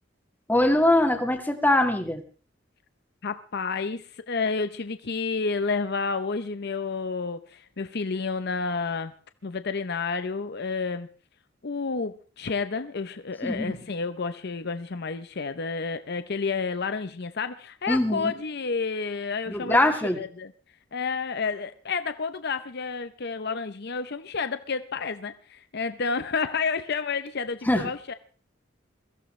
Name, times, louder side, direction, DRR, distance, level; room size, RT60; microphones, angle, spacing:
voice 1, 0.5-2.2 13.4-13.8 17.9-18.3 19.5-20.2 27.7-27.9, left 1 dB, 10° left, 1.8 m, -22 dB
voice 2, 3.2-9.1 9.4-11.1 11.6-20.5 20.9-28.1, left 4 dB, 60° left, 0.7 m, -30 dB
22.5 x 15.5 x 3.2 m
head